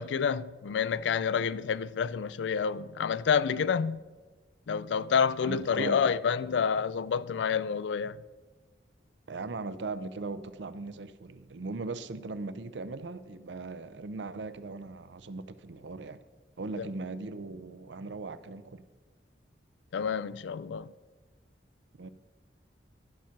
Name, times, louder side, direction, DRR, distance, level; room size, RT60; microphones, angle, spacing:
voice 1, 0.0-4.0 4.7-8.2 19.9-20.9, left 6 dB, 80° left, 0.4 m, -28 dB
voice 2, 5.4-6.1 9.3-16.2 16.6-18.8 22.0-22.1, right 3 dB, 80° right, 0.6 m, -39 dB
12.0 x 5.9 x 5.8 m
head